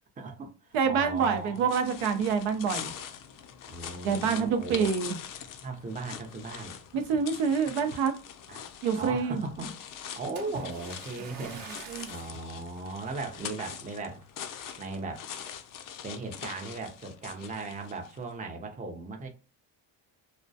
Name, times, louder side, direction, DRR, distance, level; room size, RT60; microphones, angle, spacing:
voice 1, 0.2-1.7 3.7-4.9 5.6-7.0 7.7-7.8 8.5-8.6 8.9-9.8 10.1-14.2 14.8-15.3 16.0-19.3, right 3 dB, 20° right, 0.5 m, -38 dB
voice 2, 0.7-2.9 4.0-5.2 6.9-8.1 8.8-9.4 11.9-12.1, right 6 dB, 80° right, 0.6 m, -27 dB
sound 1, 1.0-18.2, left 8 dB, 45° left, 0.4 m, -43 dB
Splash splatter, 10.4-12.4 13.1-13.3 13.9-14.0, right 3 dB, 50° right, 0.8 m, -44 dB
2.2 x 2.1 x 2.6 m
cardioid pair, 85°, 47 cm